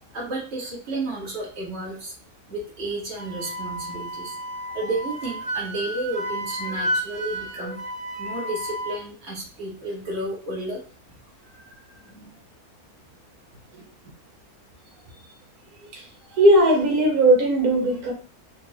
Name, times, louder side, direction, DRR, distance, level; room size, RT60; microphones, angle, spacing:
voice 1, 0.1-2.1 2.5-4.4 4.7-7.8 8.2-10.8, right 2 dB, 45° right, -4 dB, 1.7 m, -32 dB
Wind instrument woodwind instrument, 3.2-9.0, equal, 30° right, 0.8 m, -31 dB
voice 2, 16.3-18.1, right 1 dB, 80° right, 0 dB, 1.5 m, -18 dB
4.2 x 2.2 x 3.0 m, 0.39 s
omnidirectional pair, 1.6 m